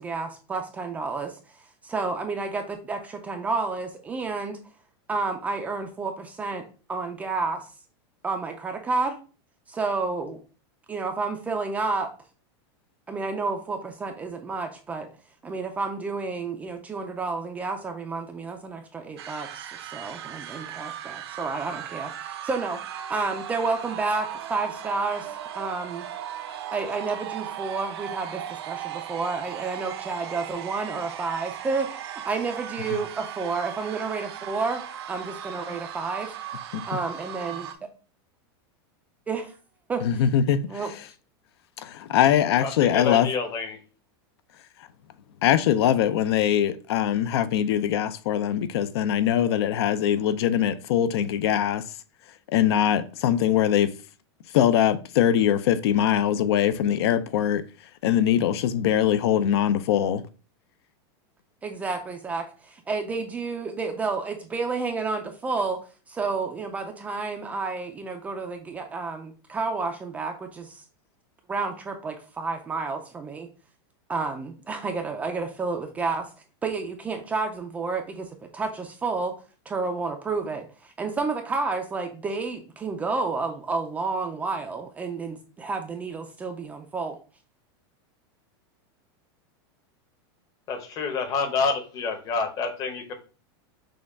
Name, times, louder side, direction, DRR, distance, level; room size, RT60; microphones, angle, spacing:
voice 1, 0.0-1.4 1.8-4.6 5.1-7.7 8.2-9.2 9.7-10.4 10.9-12.1 13.1-15.1 15.4-26.1 26.7-36.3 36.9-37.7 39.3-39.5 39.9-40.2 40.7-40.9 61.6-65.8 66.1-70.8 71.5-73.5 74.1-76.3 76.6-79.3 79.7-87.2, right 4 dB, 10° right, 0.3 m, -30 dB
sound 1, 19.2-37.7, right 10 dB, 75° right, 0.6 m, -37 dB
voice 2, 40.0-40.8 41.8-43.3 45.4-51.8 52.5-53.9 54.5-57.6 58.0-60.2, left 10 dB, 75° left, 0.4 m, -22 dB
voice 3, 42.6-43.8 90.7-93.1, left 4 dB, 25° left, 0.7 m, -28 dB
6.3 x 2.2 x 3.4 m
supercardioid pair, 170°, 14 cm